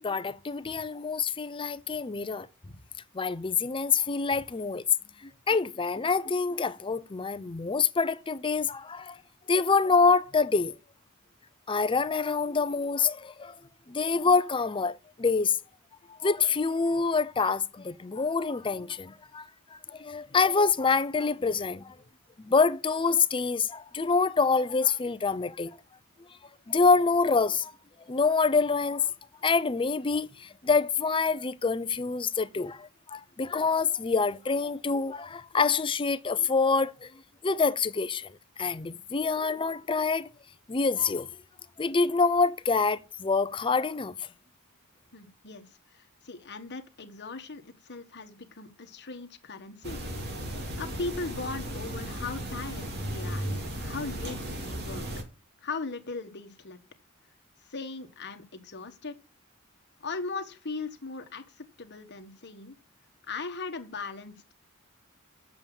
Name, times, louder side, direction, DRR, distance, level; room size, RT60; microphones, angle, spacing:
voice 1, 0.0-2.5 3.1-4.8 5.2-9.2 9.5-10.7 11.7-13.5 13.9-15.6 16.2-22.0 22.4-25.7 26.7-27.7 28.1-29.1 29.4-37.1 37.4-40.3 40.7-41.3 41.8-44.3, left 4 dB, 25° left, 0.5 m, -26 dB
voice 2, 45.1-50.0 50.8-53.4 53.8-55.1 55.6-56.8 57.6-59.2 60.0-62.8 63.3-64.4, left 3 dB, 55° left, 1.4 m, -38 dB
sound 1, 49.8-55.2, equal, 50° right, 2.5 m, -35 dB
7.8 x 7.2 x 7.2 m
head